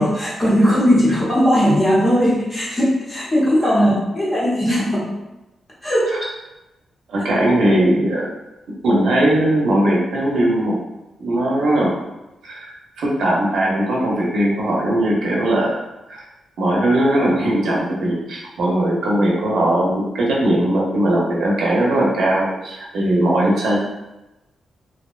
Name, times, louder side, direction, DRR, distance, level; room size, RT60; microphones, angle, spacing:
voice 1, 0.0-5.1 5.8-6.2, equal, 20° left, -8 dB, 0.7 m, -18 dB
voice 2, 7.1-8.2 8.8-10.8 11.2-11.9 12.4-12.6 13.0-15.8 16.1-16.2 16.6-23.8, right 1 dB, 70° right, -4 dB, 0.6 m, -19 dB
2.6 x 2.1 x 2.3 m, 0.99 s
wide cardioid pair, 175°, 0 cm